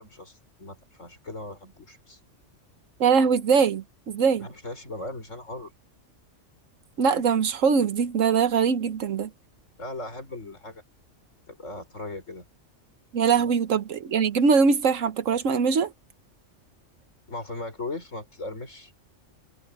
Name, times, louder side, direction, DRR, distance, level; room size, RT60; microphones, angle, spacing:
voice 1, 0.0-2.2 4.4-5.7 9.8-10.8 11.5-12.5 13.3-13.5 17.3-18.9, left 2 dB, 75° left, 6.1 m, -38 dB
voice 2, 3.0-4.5 7.0-9.3 13.1-15.9, right 6 dB, 85° right, 1.5 m, -22 dB
omnidirectional pair, 1.3 m